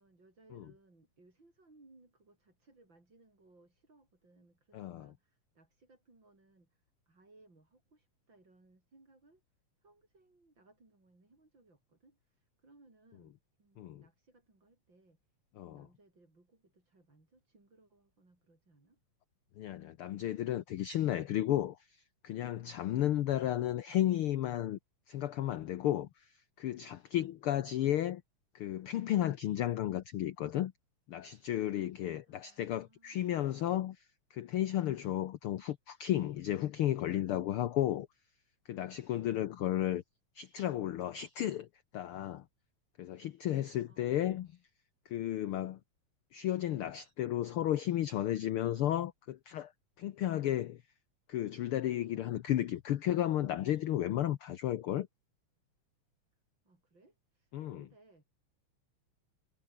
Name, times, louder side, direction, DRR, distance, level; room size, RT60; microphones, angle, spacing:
voice 1, 0.0-6.8 7.1-9.4 9.8-12.2 12.6-13.3 13.6-15.2 15.7-19.0 32.3-33.5 39.2-39.6 43.9-44.2 56.6-58.2, right 2 dB, 40° right, 7.1 m, -65 dB
voice 2, 4.7-5.1 13.8-14.0 15.6-15.8 19.6-24.8 25.1-28.2 28.5-30.7 31.1-34.0 34.3-38.1 38.6-40.0 40.3-41.7 41.9-42.4 43.0-44.5 45.0-45.8 46.3-49.7 50.0-50.8 51.3-55.1 57.5-57.8, left 12 dB, 70° left, 1.4 m, -33 dB
omnidirectional pair, 3.3 m